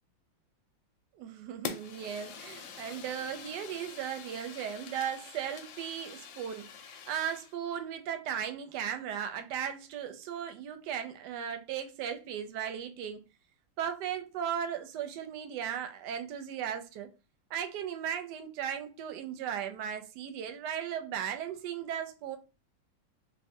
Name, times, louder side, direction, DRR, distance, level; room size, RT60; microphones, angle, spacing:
voice 1, 1.1-13.2 13.8-17.1 17.5-22.4, right 9 dB, 70° right, 1.1 m, -36 dB
Fire, 1.6-7.5, left 7 dB, 75° left, 1.3 m, -45 dB
3.2 x 2.4 x 3.5 m
omnidirectional pair, 2.2 m